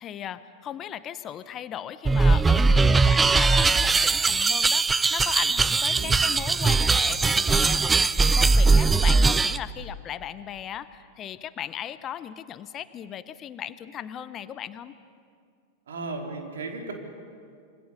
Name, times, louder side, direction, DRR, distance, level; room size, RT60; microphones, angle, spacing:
voice 1, 0.0-15.0, left 10 dB, 30° left, 14 dB, 0.9 m, -37 dB
sound 1, 2.0-9.6, right 4 dB, 15° right, 0.6 m, -20 dB
voice 2, 15.9-16.9, right 3 dB, 65° right, 2 dB, 4.0 m, -35 dB
26.5 x 25.5 x 7.0 m, 2.2 s
figure-of-eight pair, 90°, 0 cm